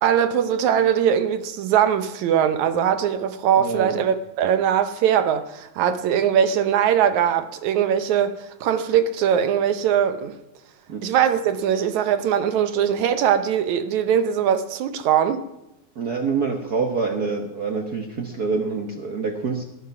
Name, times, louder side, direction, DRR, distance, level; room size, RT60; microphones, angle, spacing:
voice 1, 0.0-10.4 11.0-15.4, right 9 dB, 70° right, 2.2 m, -21 dB
voice 2, 3.6-3.9 10.9-11.1 15.9-19.6, right 4 dB, 90° right, 0.8 m, -26 dB
19.0 x 11.0 x 5.9 m
omnidirectional pair, 3.6 m